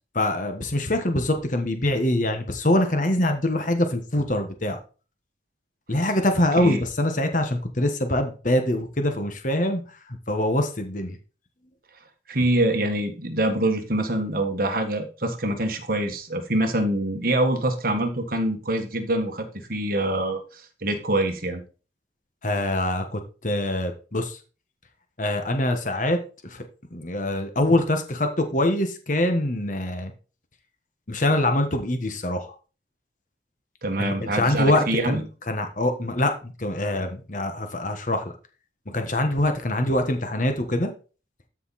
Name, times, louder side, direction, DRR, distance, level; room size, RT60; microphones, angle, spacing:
voice 1, 0.1-4.8 5.9-9.8 10.3-11.2 22.4-24.4 25.2-26.6 26.9-30.1 31.1-32.5 34.0-38.3 38.9-40.9, left 1 dB, 45° left, 6 dB, 1.4 m, -24 dB
voice 2, 12.3-21.6 33.8-35.2, right 1 dB, 50° right, 5 dB, 1.7 m, -25 dB
13.0 x 5.5 x 4.2 m, 0.36 s
head